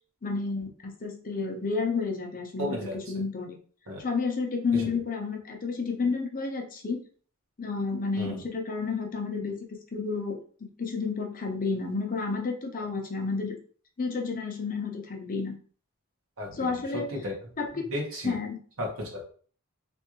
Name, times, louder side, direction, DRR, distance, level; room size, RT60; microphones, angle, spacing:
voice 1, 0.2-3.6 4.0-7.0 7.6-9.7 9.9-10.4 10.8-13.6 14.0-15.6 16.5-17.1 17.6-17.9 18.2-18.6, left 4 dB, 40° left, 2 dB, 0.6 m, -31 dB
voice 2, 2.6-3.0 3.9-4.0 4.7-4.9 8.2-8.4 16.4-16.8 17.1-17.4 17.9-18.4 18.8-19.3, left 1 dB, 65° right, -1 dB, 1.2 m, -34 dB
3.4 x 2.5 x 3.0 m, 0.43 s
head